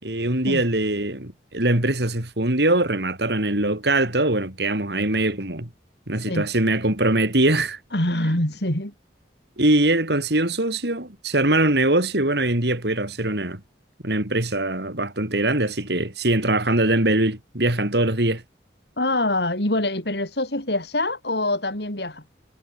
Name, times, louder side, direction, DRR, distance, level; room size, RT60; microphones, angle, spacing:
voice 1, 0.0-5.7 6.1-7.8 9.6-13.6 14.0-18.4, right 1 dB, 65° right, 3.9 m, -22 dB
voice 2, 7.9-8.9 19.0-22.2, left 1 dB, 65° left, 6.4 m, -24 dB
head